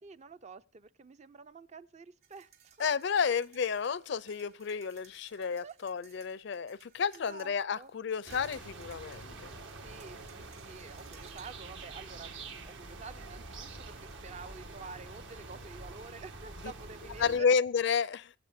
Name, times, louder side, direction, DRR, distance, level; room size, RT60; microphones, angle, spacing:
voice 1, 0.0-3.1 5.3-5.8 7.1-7.9 9.8-17.6, right 4 dB, 35° right, 0.5 m, -49 dB
sound 1, 2.2-11.5, right 9 dB, 50° right, 3.4 m, -61 dB
voice 2, 2.8-9.5 17.2-18.3, left 6 dB, 60° left, 0.5 m, -31 dB
sound 2, 8.3-17.4, right 3 dB, 70° right, 1.7 m, -46 dB
23.5 x 8.2 x 2.7 m
head